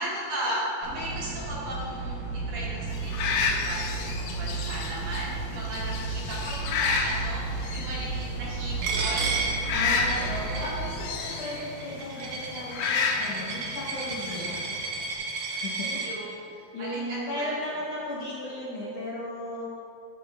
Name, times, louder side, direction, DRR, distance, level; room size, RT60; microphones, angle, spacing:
voice 1, 0.0-9.4 14.2-14.5 16.0-16.5 16.8-17.5, right 1 dB, 65° right, -7 dB, 2.8 m, -36 dB
sound 1, 0.8-11.0, right 4 dB, 40° right, 1.7 m, -33 dB
sound 2, 2.9-15.2, left 5 dB, 85° left, 2.3 m, -32 dB
Coin (dropping), 8.8-16.1, right 3 dB, 85° right, 2.5 m, -33 dB
voice 2, 9.7-14.6 15.3-19.7, left 1 dB, 70° left, -7 dB, 1.6 m, -36 dB
12.0 x 6.0 x 2.3 m, 2.4 s
omnidirectional pair, 4.0 m